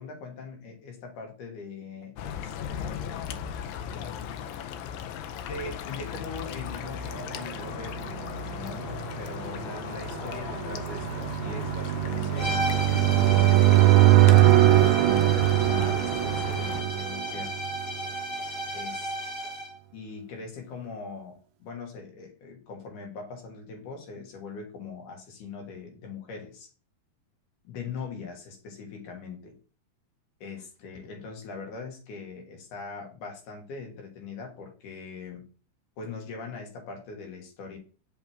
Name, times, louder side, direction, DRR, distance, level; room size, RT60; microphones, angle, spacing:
voice 1, 0.0-3.3 5.5-12.6 12.9-13.8 14.3-17.5 18.7-19.1 19.9-26.7 27.6-29.6 30.4-35.4 36.0-37.8, left 4 dB, 70° left, 2 dB, 3.0 m, -41 dB
sound 1, 2.2-16.8, left 9 dB, 90° left, 2.3 m, -37 dB
sound 2, 7.3-18.1, right 15 dB, 90° right, 1.6 m, -22 dB
sound 3, 12.4-19.8, equal, 40° left, 3.2 m, -34 dB
5.8 x 5.7 x 3.5 m, 0.36 s
omnidirectional pair, 3.9 m